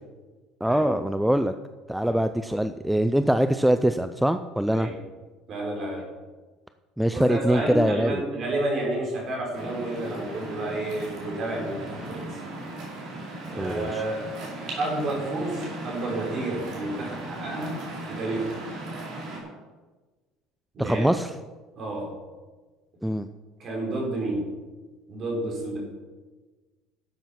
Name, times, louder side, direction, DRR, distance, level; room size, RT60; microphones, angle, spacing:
voice 1, 0.6-1.5 1.9-4.9 7.0-8.2 13.6-14.0 20.8-21.3 23.0-23.3, right 1 dB, ahead, 9 dB, 0.3 m, -23 dB
voice 2, 5.5-6.1 7.1-12.4 13.5-14.2 14.8-18.5 20.7-21.1 21.8-22.1 23.6-24.5 25.1-25.8, right 1 dB, 35° right, -1 dB, 4.4 m, -30 dB
Waves surf, 9.5-19.4, right 2 dB, 55° right, 4.3 m, -37 dB
12.0 x 8.0 x 5.9 m, 1.3 s
cardioid pair, 155°, 0 cm